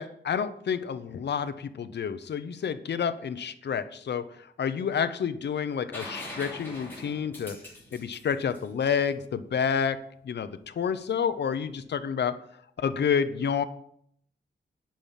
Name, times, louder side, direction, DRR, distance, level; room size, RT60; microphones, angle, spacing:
voice 1, 0.0-4.2 4.6-7.5 7.9-10.0 10.2-12.4 12.8-13.6, left 7 dB, 70° left, 10 dB, 0.8 m, -29 dB
sound 1, 5.9-9.6 11.5-11.6, left 1 dB, 10° left, 3.2 m, -43 dB
10.5 x 5.7 x 7.4 m, 0.69 s
wide cardioid pair, 160°, 18 cm